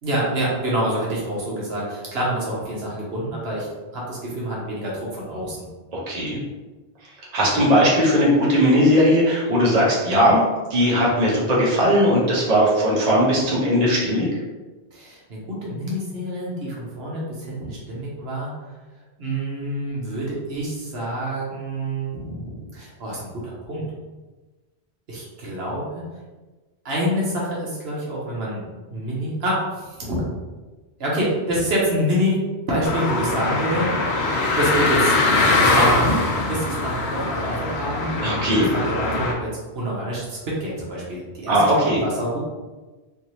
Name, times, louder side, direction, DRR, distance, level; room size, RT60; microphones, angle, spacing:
voice 1, 0.0-3.7 3.9-5.7 14.9-18.5 19.2-23.9 25.1-26.1 26.8-30.2 31.0-33.9 34.6-35.2 35.6-36.2 36.5-42.4, equal, 70° right, -5 dB, 1.2 m, -27 dB
voice 2, 5.9-6.4 7.3-10.4 10.7-14.3 38.2-38.7 41.5-42.0, equal, 40° right, -5 dB, 0.9 m, -18 dB
sound 1, 32.8-39.3, left 2 dB, 80° left, 0.9 m, -22 dB
3.5 x 2.6 x 2.9 m, 1.2 s
omnidirectional pair, 1.1 m